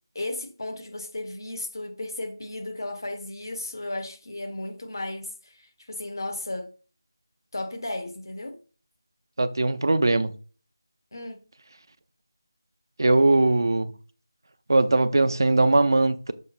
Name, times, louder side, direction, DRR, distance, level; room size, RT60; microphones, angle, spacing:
voice 1, 0.1-6.7 7.5-8.6 11.1-11.4, left 2 dB, 65° left, 1.2 m, -34 dB
voice 2, 9.4-10.3 13.0-13.9 14.7-16.3, right 2 dB, 65° right, 0.6 m, -20 dB
6.2 x 3.4 x 5.9 m
figure-of-eight pair, 170°, 2 cm